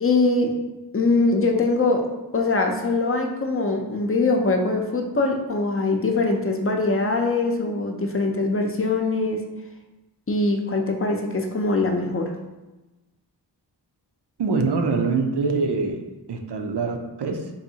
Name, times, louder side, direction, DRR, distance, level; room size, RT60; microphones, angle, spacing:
voice 1, 0.0-0.5 0.9-2.0 2.3-9.4 10.3-12.3, left 3 dB, 30° left, 2 dB, 0.5 m, -22 dB
voice 2, 14.4-16.0 16.3-17.5, right 4 dB, 70° right, 4 dB, 0.5 m, -24 dB
4.0 x 2.6 x 2.7 m, 1.1 s
wide cardioid pair, 55°, 42 cm